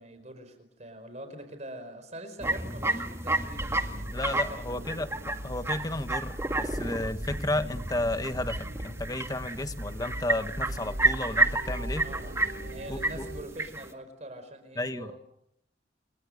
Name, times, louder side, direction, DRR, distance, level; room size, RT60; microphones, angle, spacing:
voice 1, 0.0-4.8 11.9-15.2, right 1 dB, 40° right, 8 dB, 4.9 m, -44 dB
sound 1, 2.4-13.9, right 2 dB, 15° right, 1.9 m, -31 dB
sound 2, 3.5-13.4, equal, 65° right, 6.9 m, -39 dB
voice 2, 4.1-5.1 5.4-12.0 12.9-13.3 14.8-15.1, left 1 dB, 20° left, 9 dB, 1.5 m, -32 dB
30.0 x 27.5 x 6.7 m, 0.74 s
head